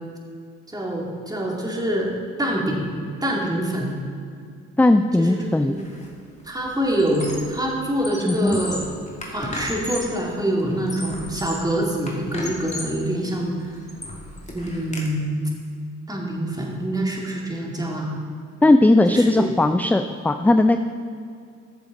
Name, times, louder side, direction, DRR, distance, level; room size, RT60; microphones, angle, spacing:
voice 1, 0.7-3.9 5.2-5.8 6.4-8.8 9.3-13.7 14.5-15.5 16.1-18.2 19.1-19.5, right 1 dB, 10° right, -2 dB, 2.6 m, -25 dB
voice 2, 4.8-5.8 8.3-8.6 18.6-20.8, left 2 dB, 5° left, 9 dB, 0.4 m, -17 dB
Squeak, 5.8-6.1 6.4-7.6 7.9-10.2 10.7-11.7 12.1-13.0 13.5-15.1, left 1 dB, 20° left, 2.4 m, -35 dB
14.0 x 7.0 x 4.0 m, 2.3 s
supercardioid pair, 55°, 32 cm